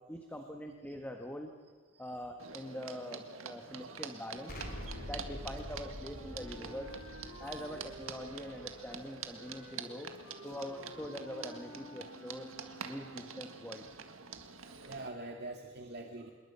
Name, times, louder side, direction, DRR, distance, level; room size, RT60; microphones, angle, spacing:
voice 1, 0.1-1.5 2.0-4.6 5.0-6.9 7.4-10.1 10.4-12.5 12.8-13.9, equal, 5° left, 3 dB, 1.5 m, -44 dB
sound 1, 2.4-15.1, right 6 dB, 70° right, 1.8 m, -47 dB
Explosion, 4.5-9.3, equal, 40° left, 3.8 m, -46 dB
Wind instrument woodwind instrument, 5.9-13.6, equal, 85° left, 7.5 m, -52 dB
voice 2, 14.6-16.3, right 2 dB, 50° right, 2 dB, 2.0 m, -44 dB
27.0 x 22.0 x 5.8 m, 1.5 s
head